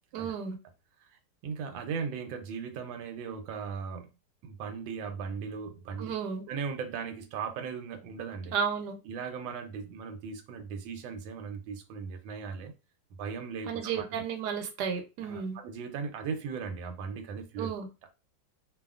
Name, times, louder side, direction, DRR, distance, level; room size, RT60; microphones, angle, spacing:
voice 1, 0.1-0.6 6.0-6.4 8.5-9.0 13.7-15.6 17.6-17.9, right 7 dB, 70° right, 1.1 m, -33 dB
voice 2, 1.4-4.1 4.4-6.1 6.5-8.5 9.0-12.7 13.2-14.2 15.2-17.7, right 6 dB, 90° right, 1.3 m, -38 dB
2.7 x 2.5 x 2.3 m
omnidirectional pair, 2.0 m